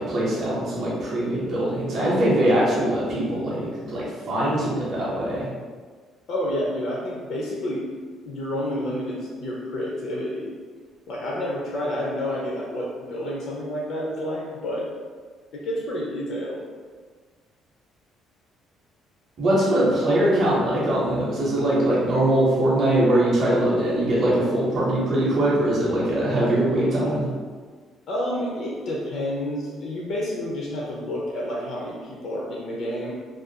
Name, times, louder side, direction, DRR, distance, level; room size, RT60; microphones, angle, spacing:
voice 1, 0.0-5.5 19.4-27.3, right 1 dB, 35° right, -6 dB, 0.6 m, -22 dB
voice 2, 6.3-7.9 8.3-10.6 11.1-14.9 15.5-16.6 28.1-33.1, left 1 dB, 50° left, -4 dB, 0.4 m, -29 dB
2.4 x 2.2 x 2.6 m, 1.5 s
cardioid pair, 180°, 0 cm